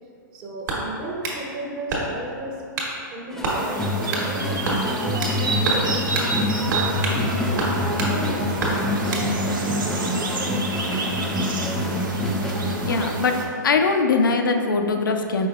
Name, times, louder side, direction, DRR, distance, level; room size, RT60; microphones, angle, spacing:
voice 1, 0.3-2.6 3.1-8.8, right 1 dB, 40° right, -1 dB, 0.7 m, -34 dB
sound 1, 0.6-1.4 1.9-2.3 2.8-3.0 3.4-3.6 4.1-4.3 4.6-5.4 5.7-5.9 6.1-6.3 6.7-7.2 7.6-8.1 8.6-9.3, right 2 dB, 65° right, 1.2 m, -27 dB
sound 2, 3.3-13.1, left 1 dB, 5° left, 0.4 m, -26 dB
sound 3, 3.5-13.5, right 3 dB, 90° right, 0.7 m, -29 dB
voice 2, 12.9-13.4 13.6-15.5, left 4 dB, 85° left, 5 dB, 0.4 m, -21 dB
5.0 x 4.5 x 2.4 m, 2.4 s
hypercardioid pair, 120°, 11 cm